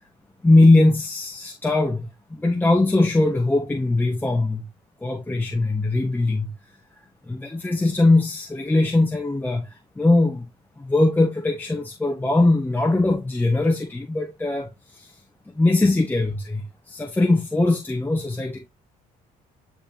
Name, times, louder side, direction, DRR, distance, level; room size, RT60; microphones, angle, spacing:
voice 1, 0.4-2.0 2.3-4.7 5.0-6.5 7.3-10.4 10.8-15.1 15.5-18.6, left 2 dB, 10° left, 1.3 m, -20 dB
9.8 x 3.5 x 2.8 m
cardioid pair, 110°, 17 cm